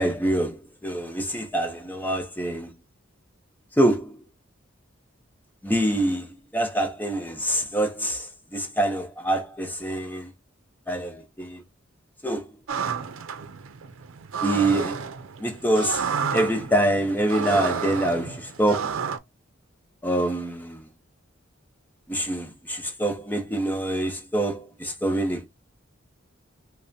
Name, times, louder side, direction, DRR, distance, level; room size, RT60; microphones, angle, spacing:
voice 1, 0.0-2.7 3.8-4.2 5.6-10.3 10.9-11.6 12.2-12.5 14.4-15.0 15.4-16.1 16.3-19.0 20.0-20.8 22.1-25.5, right 1 dB, 10° left, 0.7 m, -25 dB
sound 1, 12.7-19.2, right 6 dB, 80° right, 0.5 m, -31 dB
5.3 x 2.1 x 2.7 m
head